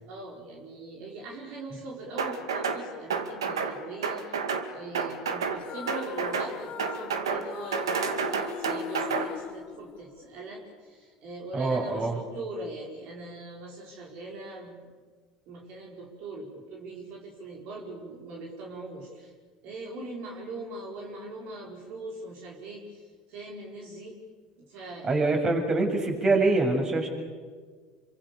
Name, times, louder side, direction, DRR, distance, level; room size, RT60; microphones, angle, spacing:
voice 1, 0.1-4.4 4.7-14.8 15.5-19.3 19.6-24.2 24.6-25.2, right 2 dB, 60° right, -1 dB, 5.0 m, -41 dB
sound 1, 2.2-2.8 3.1-3.7 4.0-4.7 4.9-5.6 5.9-6.5 6.8-7.4 7.7-9.3, right 5 dB, 85° right, 2.3 m, -29 dB
sound 2, 5.6-10.4, left 8 dB, 50° left, 3.0 m, -40 dB
voice 2, 11.5-12.2 25.0-27.1, right 3 dB, 30° right, 4 dB, 6.8 m, -24 dB
28.0 x 25.0 x 7.0 m, 1.5 s
hypercardioid pair, 75°, 2 cm